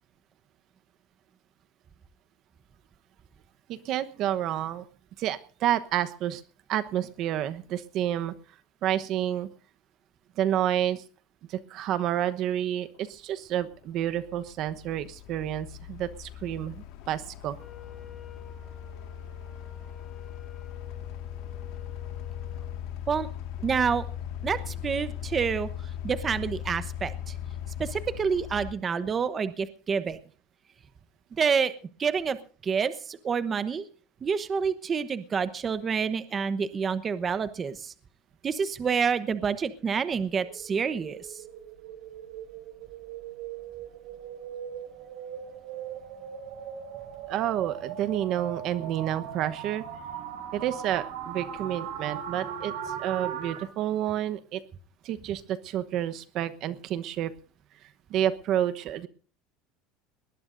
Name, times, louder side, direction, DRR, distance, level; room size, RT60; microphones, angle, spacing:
voice 1, 3.7-4.8 5.2-6.4 6.7-8.3 8.8-9.5 10.4-11.0 11.5-17.6 47.3-49.8 50.5-54.6 55.0-57.3 58.1-59.1, right 11 dB, 45° right, 12 dB, 1.0 m, -29 dB
sound 1, 13.0-13.1 13.6-28.7, left 10 dB, 65° left, 1.8 m, -39 dB
Wind instrument woodwind instrument, 17.5-22.8, left 7 dB, 10° left, 2.6 m, -50 dB
voice 2, 23.6-24.0 24.4-25.7 26.0-27.3 27.8-30.2 31.4-31.7 32.0-32.4 32.6-33.9 34.2-37.9 38.4-41.4, right 6 dB, 25° right, 13 dB, 1.0 m, -28 dB
sound 2, 40.4-53.6, right 9 dB, 80° right, 5.1 m, -39 dB
20.5 x 19.5 x 2.6 m, 0.42 s
cardioid pair, 155°, 0 cm